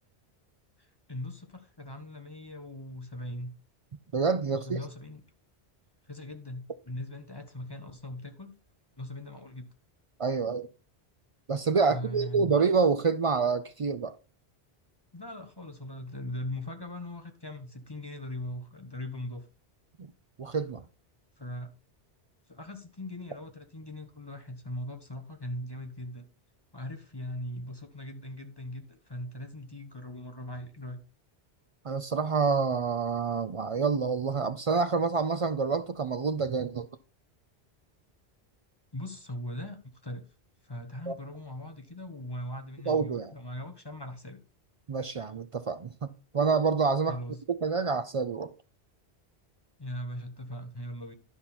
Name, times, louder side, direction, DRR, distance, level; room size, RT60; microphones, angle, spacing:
voice 1, 0.8-3.5 4.6-5.2 6.0-8.5 9.0-9.7 11.9-12.6 15.1-19.5 21.4-21.7 22.5-26.3 26.7-31.0 38.9-40.3 40.6-44.4 47.1-47.4 49.8-51.1, left 1 dB, 25° left, 1.0 m, -40 dB
voice 2, 4.1-4.8 10.2-10.7 11.5-14.1 20.0-20.1 20.4-20.8 31.8-36.9 41.1-41.2 42.9-43.3 44.9-47.2 47.5-48.5, right 5 dB, 55° right, 0.3 m, -27 dB
11.0 x 5.8 x 4.1 m
omnidirectional pair, 1.1 m